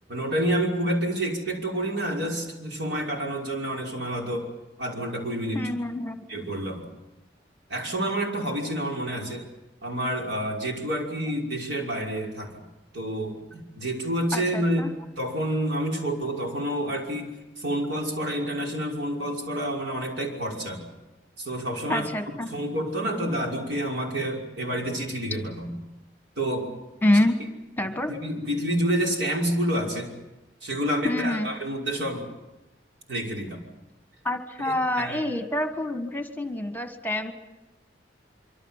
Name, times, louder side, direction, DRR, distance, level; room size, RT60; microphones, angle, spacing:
voice 1, 0.1-4.5 4.8-5.6 6.3-6.9 7.7-9.5 9.8-12.5 12.9-20.9 21.4-22.1 22.5-25.7 26.4-26.7 28.1-30.1 30.6-32.2 33.1-33.6 34.6-35.2, right 1 dB, 75° right, 0 dB, 5.7 m, -28 dB
voice 2, 5.5-6.2 14.3-14.9 21.9-22.5 27.0-27.4 27.8-28.1 31.0-31.5 34.2-37.3, left 1 dB, 10° left, 6 dB, 1.6 m, -26 dB
25.5 x 24.5 x 7.5 m, 1.0 s
head